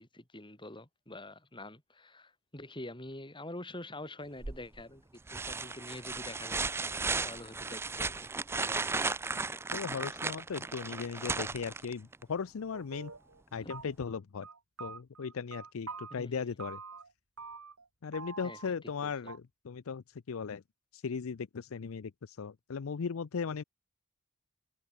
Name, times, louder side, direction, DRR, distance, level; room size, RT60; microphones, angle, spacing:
voice 1, 0.0-5.0 5.3-6.7 7.2-9.2 13.6-13.7 16.1-16.5 18.4-18.7 19.0-19.1, left 1 dB, 20° left, 5.6 m, -46 dB
sound 1, 4.4-4.8 5.3-12.2 14.0-14.1, right 4 dB, 10° right, 0.3 m, -35 dB
voice 2, 9.7-13.1 13.5-14.5 14.8-16.8 18.0-20.6 20.9-23.6, left 5 dB, 65° left, 0.5 m, -37 dB
sound 2, 12.7-13.4 13.7-14.2 14.4-16.2 16.6-17.1 17.4-17.9 18.1-19.0 19.3-19.4, right 5 dB, 75° right, 3.7 m, -46 dB
head